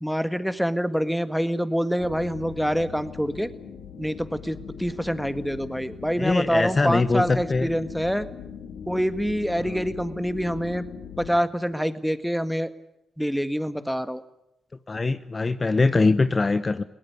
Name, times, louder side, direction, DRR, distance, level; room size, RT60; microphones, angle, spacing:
voice 1, 0.0-3.5 4.0-8.3 8.9-10.8 11.2-12.7 13.2-14.2, equal, ahead, 11 dB, 1.8 m, -26 dB
sound 1, 2.0-11.4, left 7 dB, 80° left, 2.0 m, -40 dB
voice 2, 6.2-7.7 9.6-9.8 14.9-16.8, left 3 dB, 35° left, 12 dB, 1.0 m, -22 dB
22.0 x 18.5 x 9.8 m, 0.83 s
supercardioid pair, 50°, 0 cm